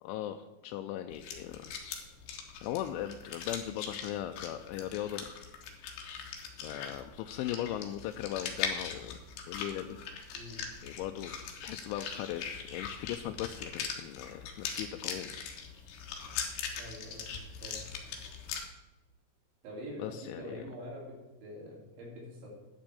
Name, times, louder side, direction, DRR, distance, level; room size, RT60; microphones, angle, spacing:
voice 1, 0.0-1.7 2.6-5.3 6.6-9.2 9.5-10.0 10.8-11.3 11.6-15.3 20.0-20.6, left 12 dB, 90° left, 6 dB, 3.0 m, -38 dB
sound 1, 1.1-18.6, left 6 dB, 70° left, 3.2 m, -41 dB
voice 2, 10.3-10.7 16.8-17.9 19.6-22.5, equal, 80° right, -3 dB, 5.8 m, -45 dB
10.5 x 6.2 x 8.3 m, 1.1 s
omnidirectional pair, 5.3 m